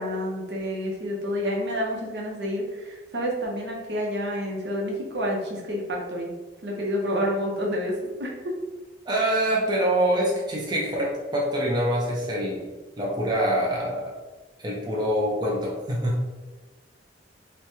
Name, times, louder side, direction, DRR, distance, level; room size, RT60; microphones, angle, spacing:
voice 1, 0.0-6.3 6.6-8.5, equal, 70° right, -2 dB, 0.8 m, -29 dB
voice 2, 9.1-14.1 14.6-16.2, right 1 dB, 25° right, -3 dB, 0.5 m, -25 dB
3.1 x 2.2 x 4.2 m, 1.2 s
head